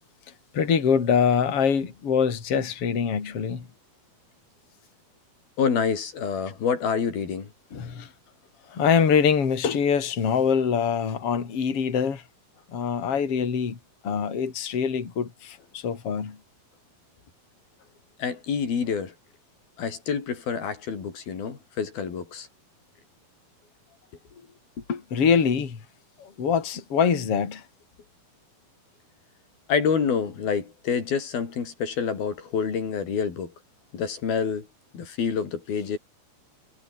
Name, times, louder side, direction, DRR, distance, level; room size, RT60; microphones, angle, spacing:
voice 1, 0.5-3.6 7.7-8.1 8.7-12.2 12.7-13.8 14.0-16.4 24.9-25.8 26.2-27.6, left 6 dB, 40° left, 3.9 m, -24 dB
voice 2, 5.6-7.5 18.2-19.1 19.8-22.5 29.7-33.5 33.9-34.7 34.9-36.0, left 6 dB, 80° left, 6.0 m, -27 dB
omnidirectional pair, 4.2 m